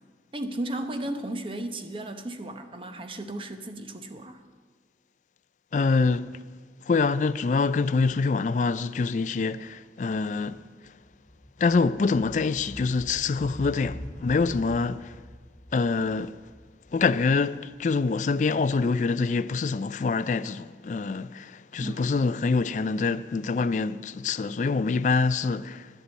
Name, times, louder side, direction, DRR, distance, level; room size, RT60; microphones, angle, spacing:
voice 1, 0.3-4.4 21.8-22.1, right 1 dB, 30° right, 0.8 m, -34 dB
voice 2, 5.7-6.3 6.9-10.6 11.6-15.2 15.7-16.4 16.9-25.9, left 4 dB, 45° left, 0.3 m, -25 dB
sound 1, 9.8-9.9 10.1-19.0, equal, 15° left, 2.9 m, -45 dB
11.5 x 8.1 x 8.2 m
head